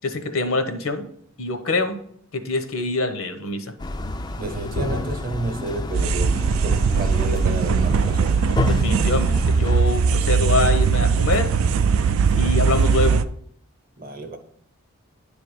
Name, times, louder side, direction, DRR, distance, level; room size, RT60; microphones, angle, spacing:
voice 1, 0.0-1.1 1.4-2.0 2.3-3.7 8.7-11.6 12.0-13.3, left 2 dB, 70° left, 8 dB, 0.8 m, -25 dB
sound 1, 3.8-13.2, left 2 dB, 20° left, 0.3 m, -31 dB
voice 2, 4.4-8.4 14.0-14.4, right 2 dB, 40° right, 6 dB, 0.8 m, -31 dB
sound 2, 5.9-13.2, right 5 dB, 70° right, 0.4 m, -20 dB
10.0 x 3.4 x 4.8 m, 0.65 s
head